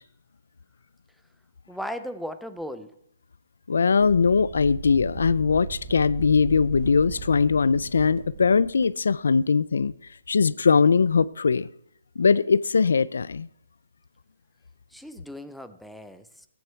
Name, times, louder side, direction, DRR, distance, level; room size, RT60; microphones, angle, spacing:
voice 1, 1.7-3.0 14.9-16.5, equal, ahead, 0.6 m, -37 dB
voice 2, 3.7-9.9 10.3-11.7 12.2-13.5, left 5 dB, 80° left, 0.5 m, -21 dB
sound 1, 4.0-8.9, right 5 dB, 35° right, 1.1 m, -38 dB
17.5 x 9.5 x 4.5 m
hypercardioid pair, 160°, 0 cm